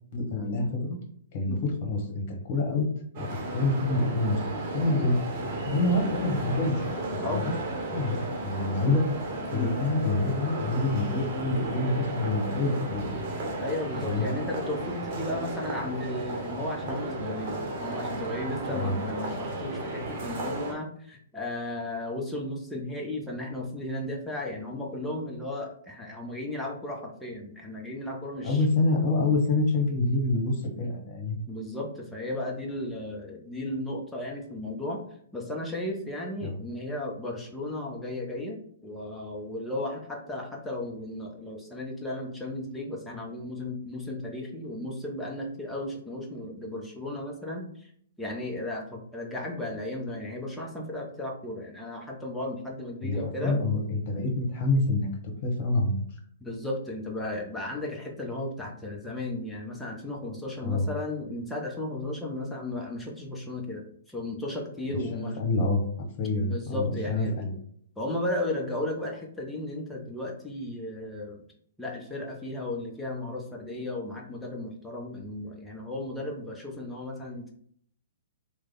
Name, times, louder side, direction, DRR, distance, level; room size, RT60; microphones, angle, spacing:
voice 1, 0.1-1.0 1.3-2.9 3.2-4.4 4.7-5.2 5.7-6.9 7.3-7.5 7.9-9.1 9.5-13.2 13.9-14.3 18.7-19.0 28.4-31.3 36.4-36.5 53.0-56.0 60.6-60.9 65.1-65.8 66.2-67.5, left 2 dB, 40° left, 1 dB, 1.3 m, -27 dB
sound 1, 3.1-20.7, right 2 dB, 45° right, 1.0 m, -34 dB
voice 2, 13.6-28.6 31.5-35.0 35.3-47.9 48.2-53.6 56.4-65.4 66.4-67.5 68.0-71.4 71.8-77.5, left 1 dB, 5° left, -2 dB, 0.8 m, -35 dB
3.2 x 2.2 x 3.8 m, 0.64 s
figure-of-eight pair, 120°, 0 cm